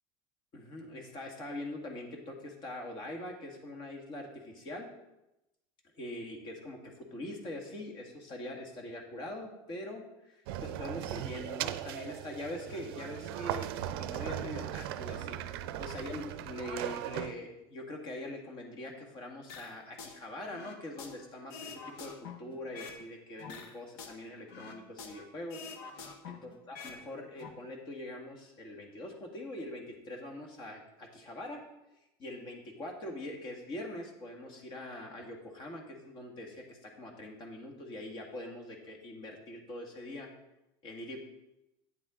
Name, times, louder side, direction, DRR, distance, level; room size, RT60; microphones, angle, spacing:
voice 1, 0.5-4.9 5.9-25.6 26.2-31.6 32.2-40.3 40.8-41.2, left 1 dB, 40° left, 2 dB, 1.9 m, -43 dB
sound 1, 10.5-17.3, right 12 dB, 85° right, 0.5 m, -38 dB
sound 2, 19.5-20.2 20.5-23.0 23.4-25.2 25.5-27.0 27.3-27.5, left 5 dB, 75° left, 1.2 m, -46 dB
9.0 x 7.8 x 3.8 m, 0.92 s
supercardioid pair, 140°, 12 cm